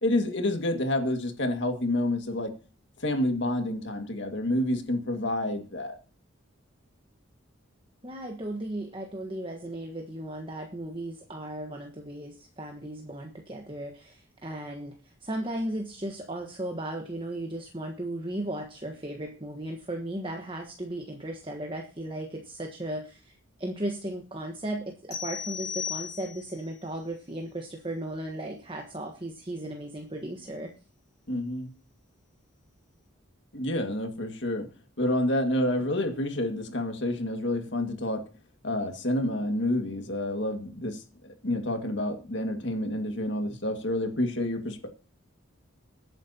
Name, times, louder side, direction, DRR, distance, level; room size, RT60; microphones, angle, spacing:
voice 1, 0.0-2.5 3.0-6.0 31.3-31.7 33.5-34.7 35.0-38.2 38.6-44.9, left 1 dB, 60° left, 5 dB, 2.1 m, -28 dB
voice 2, 8.0-30.7, right 1 dB, 25° right, 2 dB, 1.4 m, -36 dB
sound 1, 25.1-26.6, left 7 dB, 35° left, 7.0 m, -35 dB
22.0 x 9.1 x 2.9 m, 0.37 s
head